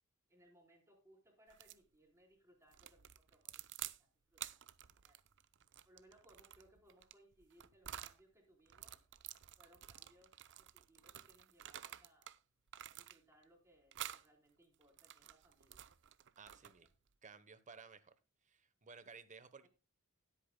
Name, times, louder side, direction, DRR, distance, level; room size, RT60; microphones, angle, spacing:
voice 1, 0.3-3.6 4.0-4.6 5.0-5.2 5.9-8.9 9.6-10.3 10.6-12.3 12.9-15.9 16.6-16.7 19.6-19.7, right 1 dB, 15° right, 0 dB, 4.1 m, -68 dB
sound 1, 1.5-1.8 2.7-4.0 4.3-8.2 8.7-12.4 12.7-13.4 13.9-14.3 14.8-16.9, right 12 dB, 55° right, 0.6 m, -51 dB
voice 2, 16.4-16.9 17.2-18.1 18.4-19.7, right 5 dB, 35° right, 13 dB, 1.0 m, -56 dB
20.0 x 8.5 x 2.2 m, 0.29 s
head